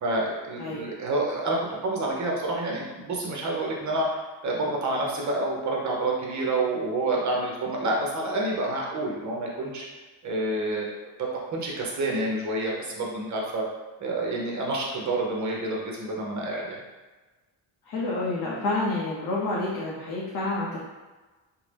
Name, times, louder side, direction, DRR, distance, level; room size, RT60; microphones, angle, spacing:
voice 1, 0.0-9.8 10.2-10.9 11.5-13.6 14.0-16.8, right 2 dB, 40° right, -2 dB, 0.8 m, -28 dB
voice 2, 17.9-20.9, left 2 dB, 50° left, -5 dB, 0.6 m, -29 dB
2.7 x 2.1 x 3.2 m, 1.2 s
cardioid pair, 100°, 45 cm